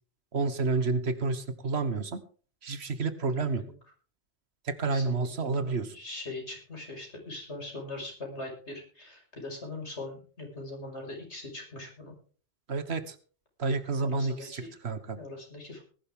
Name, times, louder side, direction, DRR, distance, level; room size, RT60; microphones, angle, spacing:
voice 1, 0.3-2.2 2.6-3.6 4.6-5.9 12.7-13.2 13.6-15.2, right 3 dB, 70° right, 12 dB, 1.5 m, -30 dB
voice 2, 4.8-12.1 14.0-14.7 15.1-15.8, left 2 dB, 80° left, 1 dB, 5.9 m, -41 dB
19.5 x 11.5 x 3.7 m, 0.40 s
omnidirectional pair, 1.1 m